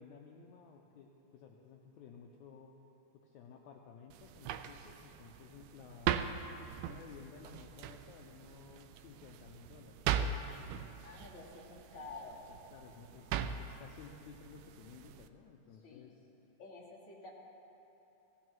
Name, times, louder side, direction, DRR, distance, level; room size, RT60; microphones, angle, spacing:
voice 1, 0.0-2.7 3.1-6.3 6.8-10.0 12.5-16.3, left 6 dB, 80° left, 1 dB, 1.7 m, -55 dB
sound 1, 4.1-15.3, right 8 dB, 80° right, 2.0 m, -40 dB
voice 2, 11.0-12.4 15.8-16.1 16.6-17.3, left 3 dB, 30° left, -5 dB, 1.7 m, -50 dB
16.5 x 15.5 x 3.0 m, 2.9 s
omnidirectional pair, 4.1 m